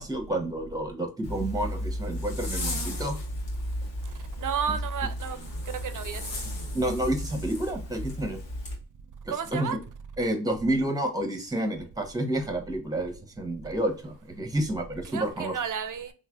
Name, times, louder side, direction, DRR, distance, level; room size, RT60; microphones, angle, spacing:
voice 1, 0.0-3.2 6.7-8.4 9.5-9.8 10.2-15.5, right 1 dB, 10° right, 0.8 m, -29 dB
Zipper (clothing), 1.2-8.8, left 1 dB, 80° left, 1.1 m, -34 dB
voice 2, 4.4-5.4 5.8-6.2 9.3-9.8 15.1-16.1, right 7 dB, 45° right, 0.6 m, -32 dB
3.3 x 2.1 x 2.2 m
supercardioid pair, 45°, 45 cm